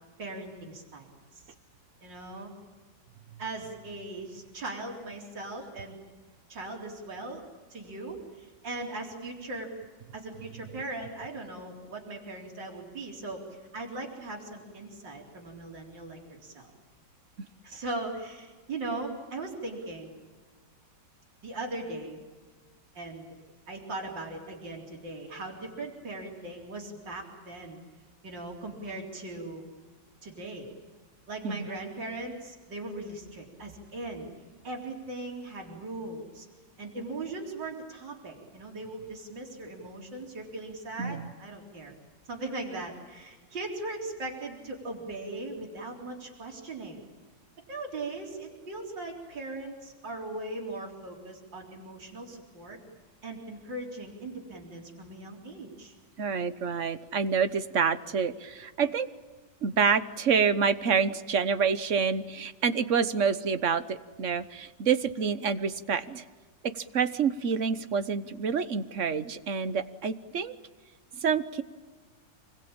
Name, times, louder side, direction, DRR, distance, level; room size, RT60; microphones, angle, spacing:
voice 1, 0.2-1.1 2.0-2.5 3.4-6.0 6.5-7.4 7.7-9.7 10.1-13.4 13.7-16.7 17.6-20.1 21.4-22.2 22.9-23.3 23.7-27.8 28.2-29.6 30.2-30.7 31.3-34.3 34.6-36.5 36.8-41.9 42.3-47.0 47.7-52.8 53.2-55.9, right 2 dB, 75° right, 0 dB, 4.6 m, -39 dB
voice 2, 41.0-41.3 56.2-59.1 59.6-66.2 66.6-70.5 71.2-71.6, right 6 dB, 45° right, 12 dB, 1.3 m, -27 dB
29.0 x 21.0 x 8.9 m, 1.4 s
omnidirectional pair, 2.0 m